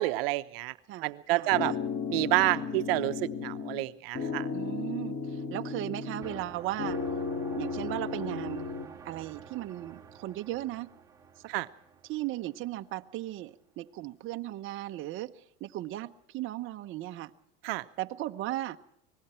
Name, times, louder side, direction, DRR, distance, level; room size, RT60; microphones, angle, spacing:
voice 1, 0.0-0.7 1.0-1.7 2.1-4.5 11.5-11.7 17.6-17.8, right 19 dB, 75° right, 0.9 m, -29 dB
voice 2, 0.9-1.8 4.5-7.0 7.5-8.7 9.0-10.9 12.0-17.3 18.0-18.8, right 15 dB, 45° right, 1.0 m, -37 dB
sound 1, 1.5-3.9 4.1-6.5 6.8-8.9, left 5 dB, 45° left, 3.2 m, -34 dB
sound 2, 6.2-12.9, right 6 dB, 10° right, 2.3 m, -48 dB
29.0 x 20.0 x 4.4 m
supercardioid pair, 125°, 29 cm